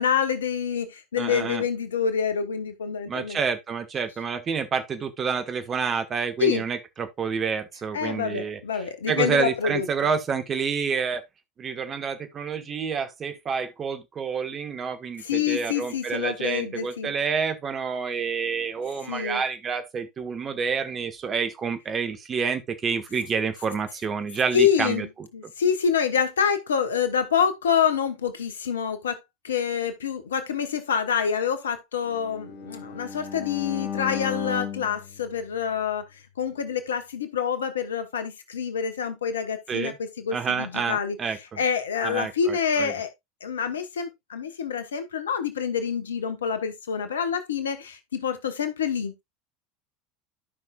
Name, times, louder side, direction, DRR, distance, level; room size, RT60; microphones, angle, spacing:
voice 1, 0.0-3.4 6.4-6.6 7.9-9.9 15.2-17.1 19.1-19.4 24.5-25.1 25.3-29.2 29.4-36.0 36.4-41.2 41.6-43.1 43.4-49.2, left 7 dB, 75° left, 1.2 m, -26 dB
voice 2, 1.2-1.6 3.1-11.2 11.6-25.1 39.7-40.0 40.3-41.6 42.0-42.9, right 6 dB, 30° right, 1.5 m, -28 dB
Bowed string instrument, 32.1-36.2, left 7 dB, 40° left, 2.5 m, -36 dB
12.5 x 5.7 x 2.4 m
figure-of-eight pair, 75°, 0 cm